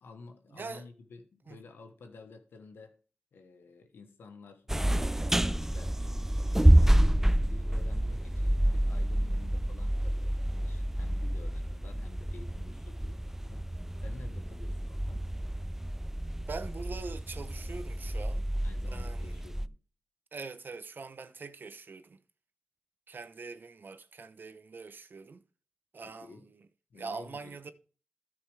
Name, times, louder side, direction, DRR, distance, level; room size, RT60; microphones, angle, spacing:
voice 1, 0.0-3.0 3.3-6.3 7.3-13.7 14.0-15.3 18.6-19.8 26.0-26.5 26.9-27.7, left 4 dB, 90° left, 1.3 m, -52 dB
voice 2, 0.5-0.9 1.5-1.6 16.5-18.5 18.9-19.4 20.3-22.2 23.1-25.4 25.9-26.6 26.9-27.7, right 4 dB, 65° right, 0.9 m, -43 dB
sound 1, 4.7-19.7, right 1 dB, 10° right, 0.4 m, -28 dB
13.0 x 6.8 x 3.4 m
cardioid pair, 40°, 4 cm